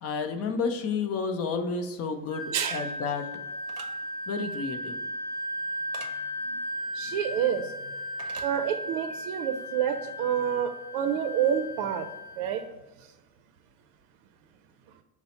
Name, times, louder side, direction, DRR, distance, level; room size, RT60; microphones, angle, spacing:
voice 1, 0.0-3.2 4.3-5.0, left 4 dB, 40° left, 6 dB, 0.5 m, -31 dB
Wind instrument woodwind instrument, 2.3-12.7, left 1 dB, 15° right, 1.0 m, -36 dB
sound 1, 3.7-3.9 5.9-6.1 8.2-8.5, right 5 dB, 40° right, 0.7 m, -43 dB
voice 2, 6.9-7.7 8.4-12.1 12.4-12.6, right 9 dB, 85° right, 8 dB, 0.5 m, -28 dB
5.5 x 2.0 x 4.0 m, 1.1 s
cardioid pair, 145°, 40 cm